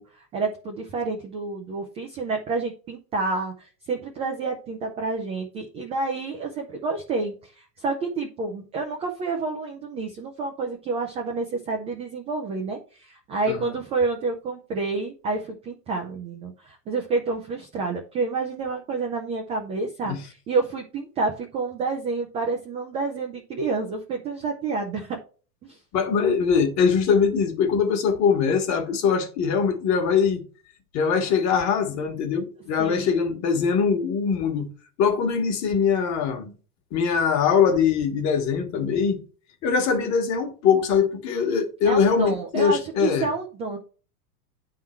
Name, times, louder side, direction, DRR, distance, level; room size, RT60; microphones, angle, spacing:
voice 1, 0.0-25.2 25.6-25.8 32.8-33.1 41.8-43.8, right 3 dB, 15° right, 0.3 m, -29 dB
voice 2, 25.9-30.4 30.9-34.7 35.0-36.5 36.9-39.2 39.6-43.3, left 6 dB, 35° left, 1.4 m, -22 dB
9.2 x 3.8 x 4.4 m
supercardioid pair, 135°, 48 cm